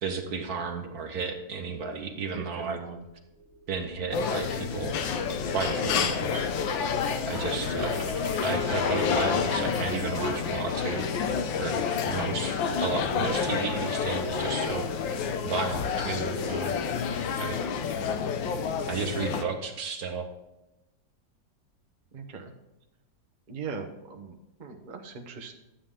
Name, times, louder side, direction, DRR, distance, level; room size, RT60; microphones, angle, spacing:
voice 1, 0.0-2.8 3.7-5.0 5.3-6.5 7.2-8.0 8.4-16.8 17.4-17.6 18.9-20.3, right 5 dB, 60° right, 5 dB, 1.3 m, -33 dB
voice 2, 2.3-3.0 5.9-6.2 7.3-7.7 17.9-18.2 22.1-22.5 23.5-25.6, right 5 dB, 35° right, 2 dB, 0.8 m, -40 dB
sound 1, 3.1-18.0, right 3 dB, 55° left, 5.0 m, -49 dB
sound 2, 4.1-19.4, left 6 dB, 85° left, 1.5 m, -29 dB
sound 3, 7.3-12.9, left 1 dB, 20° left, 1.7 m, -43 dB
11.5 x 8.5 x 3.7 m, 0.94 s
omnidirectional pair, 2.0 m